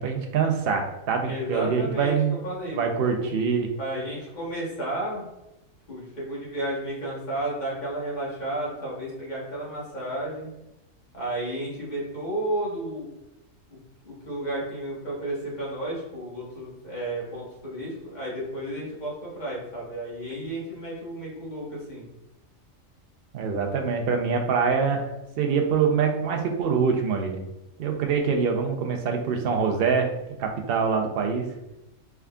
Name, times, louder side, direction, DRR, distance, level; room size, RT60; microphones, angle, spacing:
voice 1, 0.0-2.4 2.7-3.7 23.3-25.1 25.4-27.5 27.8-30.1 30.4-31.5, right 6 dB, 60° right, 3 dB, 0.6 m, -24 dB
voice 2, 1.3-3.3 3.8-5.2 5.9-10.5 11.1-13.1 13.7-13.8 14.0-22.1, right 1 dB, 35° left, -6 dB, 1.2 m, -32 dB
3.6 x 3.4 x 2.3 m, 0.93 s
omnidirectional pair, 1.4 m